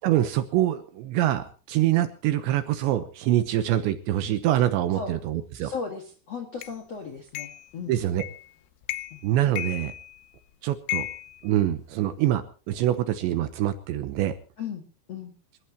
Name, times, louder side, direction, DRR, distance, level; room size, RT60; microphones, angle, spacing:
voice 1, 0.0-5.7 7.9-8.2 9.2-9.9 10.6-11.1 11.4-14.3, right 13 dB, 75° right, 10 dB, 2.9 m, -25 dB
voice 2, 5.6-7.9 9.1-9.2 14.6-14.8 15.1-15.3, left 5 dB, 60° left, 3 dB, 1.7 m, -36 dB
sound 1, 6.6-6.7 7.3-7.7 8.2-8.5 8.8-9.2 9.6-10.4 10.9-12.1, left 16 dB, 75° left, 2.6 m, -34 dB
26.5 x 14.0 x 2.9 m, 0.36 s
omnidirectional pair, 5.9 m